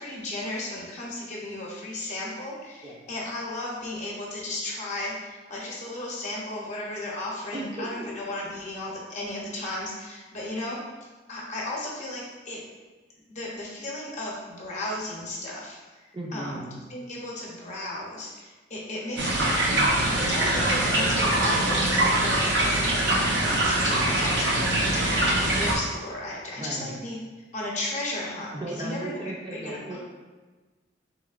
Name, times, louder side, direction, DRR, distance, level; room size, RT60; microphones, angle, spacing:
voice 1, 0.0-10.8 11.3-12.6 13.3-15.8 16.3-16.6 16.9-19.6 20.2-21.6 22.1-27.2 27.5-30.0, left 1 dB, 40° left, -4 dB, 0.7 m, -35 dB
voice 2, 7.5-8.1 16.1-16.8 26.6-26.9 28.5-30.0, right 1 dB, 25° right, -3 dB, 0.5 m, -35 dB
sound 1, 19.2-25.8, right 1 dB, 70° right, 0.7 m, -23 dB
3.6 x 3.0 x 2.4 m, 1.3 s
head